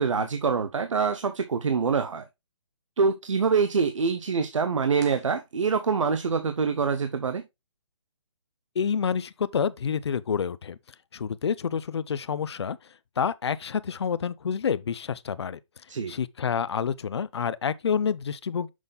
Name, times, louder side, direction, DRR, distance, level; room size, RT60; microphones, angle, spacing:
voice 1, 0.0-2.2 3.0-7.4 15.9-16.1, right 5 dB, 85° right, 0.8 m, -25 dB
sound 1, 4.9-6.1, right 4 dB, 35° right, 1.4 m, -51 dB
voice 2, 8.8-10.8 11.1-12.8 13.2-15.6 16.1-18.7, left 7 dB, 60° left, 0.5 m, -28 dB
6.3 x 5.5 x 3.5 m
hypercardioid pair, 175°, 16 cm